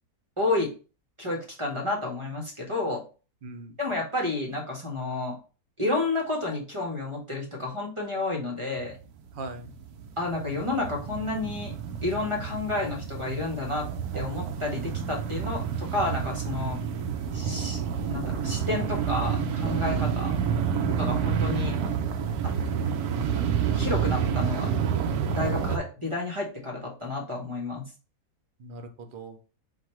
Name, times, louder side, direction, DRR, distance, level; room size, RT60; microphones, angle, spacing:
voice 1, 0.4-0.7 1.2-3.0 3.8-5.4 5.8-9.0 10.2-11.7 12.0-13.9 14.1-16.8 17.3-17.8 18.1-20.3 20.9-21.8 23.7-24.7 25.4-27.8, left 2 dB, 25° right, 0 dB, 0.8 m, -30 dB
voice 2, 3.4-3.8 9.3-9.7 19.8-20.4 28.6-29.4, right 2 dB, 60° right, 6 dB, 0.5 m, -40 dB
sound 1, 8.8-8.9 9.2-25.8, right 7 dB, 75° right, 1.1 m, -29 dB
4.2 x 2.5 x 4.3 m, 0.34 s
omnidirectional pair, 1.6 m